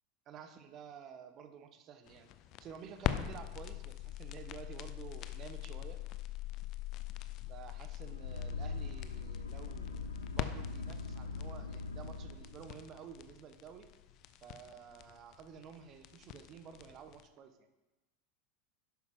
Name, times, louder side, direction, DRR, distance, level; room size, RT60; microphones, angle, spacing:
voice 1, 0.3-2.3 2.6-6.0 7.5-13.9 14.4-17.7, right 7 dB, 40° right, 9 dB, 1.1 m, -51 dB
sound 1, 2.1-17.2, left 13 dB, 45° left, 0.6 m, -42 dB
sound 2, 8.0-12.9, left 3 dB, 90° left, 0.7 m, -42 dB
11.0 x 8.1 x 3.7 m, 1.1 s
hypercardioid pair, 90°, 0 cm